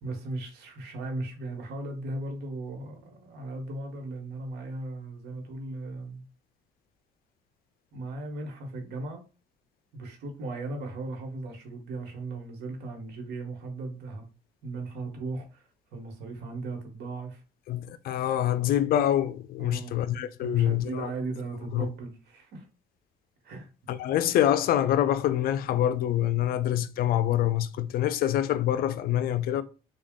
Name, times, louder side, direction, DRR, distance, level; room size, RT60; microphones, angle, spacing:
voice 1, 0.0-6.2 7.9-9.2 9.9-14.3 14.6-17.4 19.6-20.0 20.4-22.7 23.4-23.7, right 2 dB, 75° right, 1.1 m, -37 dB
voice 2, 17.7-21.1 21.7-21.9 23.9-29.6, left 11 dB, 60° left, 0.4 m, -25 dB
3.5 x 2.3 x 3.6 m
cardioid pair, 110°, 17 cm